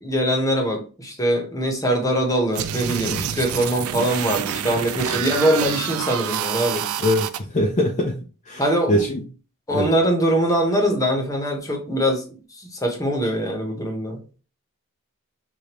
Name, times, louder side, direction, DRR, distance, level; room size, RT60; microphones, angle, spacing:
voice 1, 0.0-6.8 8.6-9.0 9.7-14.2, right 1 dB, 15° left, 2 dB, 1.1 m, -22 dB
sound 1, 2.5-7.4, right 9 dB, 85° right, 0.4 m, -27 dB
voice 2, 7.0-8.2 8.5-9.2 9.7-9.9, left 1 dB, 35° left, 0 dB, 0.6 m, -23 dB
6.7 x 2.6 x 3.0 m, 0.37 s
head